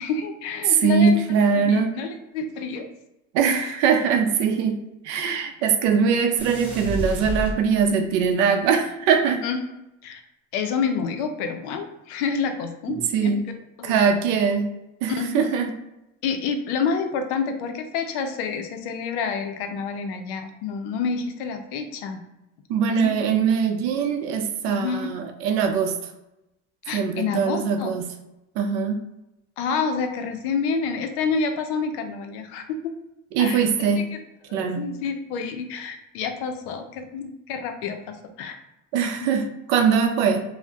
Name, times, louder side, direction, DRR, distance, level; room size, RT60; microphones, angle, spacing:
voice 1, 0.0-1.2 1.5-2.9 9.4-9.7 10.0-10.2 10.5-13.3 13.8-14.0 15.1-15.6 16.2-22.2 22.9-23.1 24.7-25.1 26.8-27.9 29.6-32.9 33.4-33.9 34.5-38.6 39.2-39.3, left 5 dB, 85° left, 6 dB, 0.5 m, -28 dB
voice 2, 0.6-1.9 3.3-4.8 5.0-9.4 12.9-13.4 13.8-14.7 15.0-15.7 22.7-26.1 26.9-28.1 28.6-29.0 33.3-34.1 34.5-34.9 38.9-40.4, right 6 dB, 80° right, 5 dB, 0.6 m, -22 dB
sound 1, 6.4-8.2, equal, 5° right, 1.0 m, -30 dB
2.5 x 2.1 x 3.4 m, 0.91 s
supercardioid pair, 105°, 33 cm